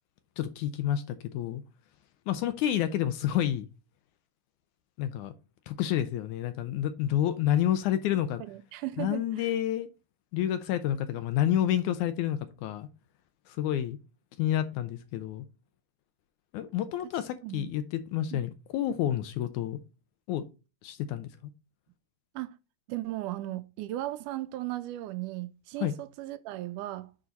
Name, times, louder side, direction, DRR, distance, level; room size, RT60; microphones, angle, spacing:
voice 1, 0.4-1.6 2.3-3.7 5.0-5.3 5.7-8.4 9.0-9.9 10.3-12.9 13.5-14.0 14.4-15.5 16.5-19.8 20.3-20.4 20.8-21.3 25.8-26.0, left 11 dB, 75° left, 1.9 m, -29 dB
voice 2, 8.4-9.5 17.4-17.7 18.3-18.4 22.4-22.6 22.9-27.3, right 15 dB, 80° right, 2.0 m, -36 dB
8.6 x 3.9 x 4.0 m
omnidirectional pair, 3.8 m